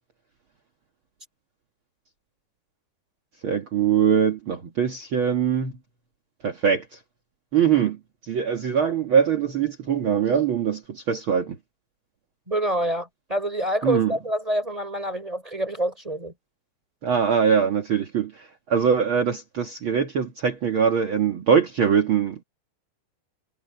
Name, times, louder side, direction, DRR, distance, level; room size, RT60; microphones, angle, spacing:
voice 1, 3.4-5.7 6.4-7.0 7.5-11.6 13.8-14.1 17.0-22.4, right 7 dB, 55° right, 1.4 m, -22 dB
voice 2, 12.5-16.3, right 1 dB, 10° right, 4.7 m, -26 dB
omnidirectional pair, 4.7 m